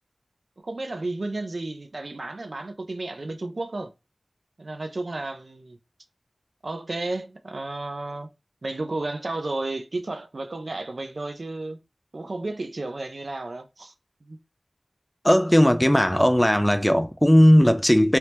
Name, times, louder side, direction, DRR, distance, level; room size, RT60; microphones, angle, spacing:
voice 1, 0.6-3.9 4.6-5.8 6.6-8.3 8.6-11.8 12.1-13.9 14.2-14.4, right 2 dB, 65° right, 0.4 m, -32 dB
voice 2, 15.2-18.2, equal, 10° left, 0.3 m, -17 dB
3.2 x 2.0 x 2.9 m
wide cardioid pair, 45°, 0 cm